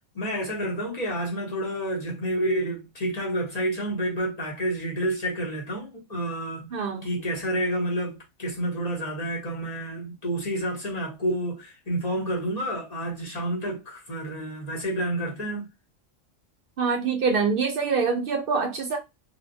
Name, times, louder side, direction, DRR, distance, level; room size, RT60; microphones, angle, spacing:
voice 1, 0.1-6.7 7.0-15.6, right 1 dB, 35° left, 0.9 m, -29 dB
voice 2, 6.7-7.1 16.8-19.0, right 5 dB, 65° right, 0.6 m, -25 dB
3.0 x 2.0 x 2.6 m
omnidirectional pair, 1.3 m